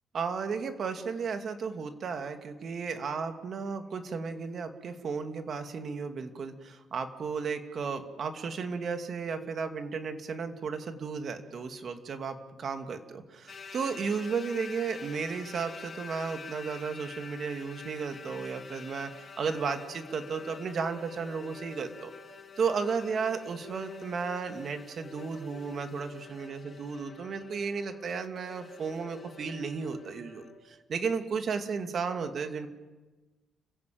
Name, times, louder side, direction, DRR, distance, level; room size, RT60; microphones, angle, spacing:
voice 1, 0.1-22.1 22.6-32.7, right 5 dB, 55° right, 6 dB, 2.6 m, -34 dB
sound 1, 13.5-30.6, left 5 dB, 40° left, 3.6 m, -47 dB
30.0 x 16.5 x 7.8 m, 1.2 s
cardioid pair, 90°, 0 cm